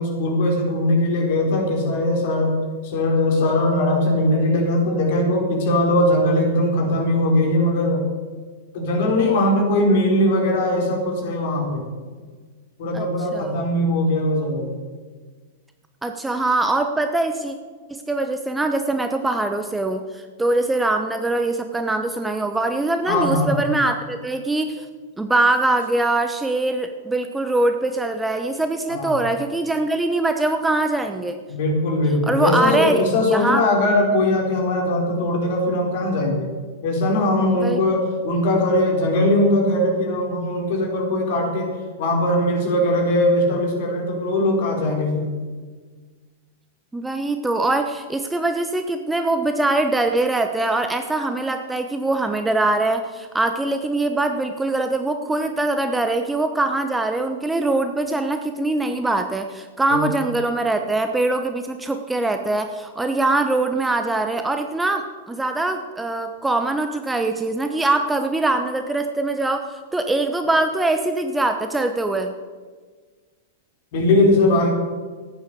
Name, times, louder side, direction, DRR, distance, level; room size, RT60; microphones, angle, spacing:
voice 1, 0.0-2.6 2.8-8.1 8.7-11.8 12.8-14.7 23.1-23.6 28.9-29.2 31.5-36.5 36.8-41.7 42.0-45.3 73.9-74.7, left 1 dB, 50° left, 1 dB, 4.4 m, -20 dB
voice 2, 13.3-13.6 16.0-17.6 17.9-24.9 25.2-31.4 32.3-33.0 33.3-33.6 37.6-37.8 46.9-72.3, right 2 dB, 10° right, 6 dB, 1.0 m, -22 dB
14.0 x 10.0 x 6.9 m, 1.5 s
figure-of-eight pair, 95°, 0 cm